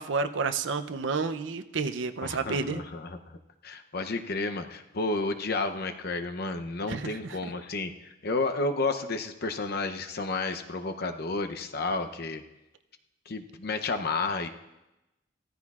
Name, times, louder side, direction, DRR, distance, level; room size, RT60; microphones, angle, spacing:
voice 1, 0.0-2.8 6.9-7.1, right 4 dB, 65° right, 9 dB, 0.6 m, -30 dB
voice 2, 2.2-12.4 13.3-14.5, left 3 dB, 50° left, 7 dB, 0.7 m, -31 dB
15.5 x 14.0 x 2.4 m, 0.98 s
head